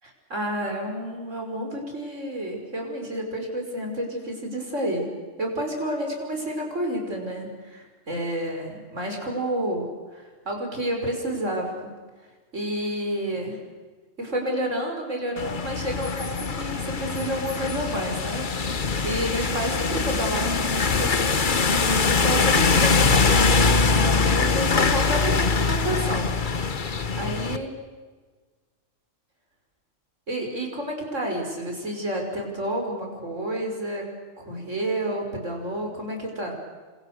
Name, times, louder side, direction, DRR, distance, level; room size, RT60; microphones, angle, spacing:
voice 1, 0.0-5.1 5.4-11.9 12.5-13.6 14.2-21.8 22.1-26.3 27.2-27.7 30.3-34.1 34.4-36.5, right 1 dB, 70° right, 2 dB, 5.9 m, -30 dB
sound 1, 15.4-27.6, left 4 dB, 40° left, 1.3 m, -23 dB
29.5 x 27.0 x 6.7 m, 1.4 s
omnidirectional pair, 1.3 m